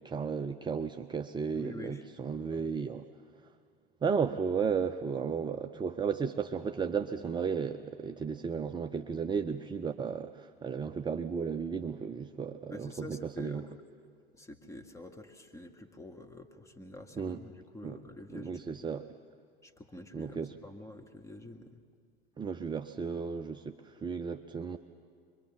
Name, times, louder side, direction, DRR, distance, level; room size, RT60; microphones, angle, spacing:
voice 1, 0.0-3.0 4.0-13.6 17.2-17.4 17.8-18.0 18.3-19.0 20.1-20.5 22.4-24.8, right 6 dB, 15° right, 8 dB, 0.6 m, -34 dB
voice 2, 1.5-2.1 2.5-2.6 12.7-13.8 14.3-18.9 19.6-21.8, left 1 dB, 10° left, 4 dB, 1.8 m, -47 dB
25.0 x 22.5 x 7.2 m, 2.3 s
figure-of-eight pair, 75°, 30 cm